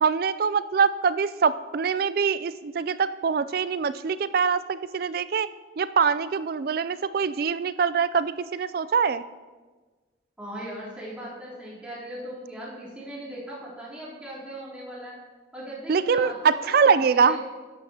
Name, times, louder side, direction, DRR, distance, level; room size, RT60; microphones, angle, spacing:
voice 1, 0.0-5.5 5.8-9.2 15.9-17.4, right 6 dB, 50° right, 15 dB, 0.3 m, -24 dB
voice 2, 10.4-15.1 15.5-17.4, right 1 dB, 5° right, -10 dB, 3.5 m, -38 dB
12.5 x 11.0 x 2.9 m, 1.3 s
head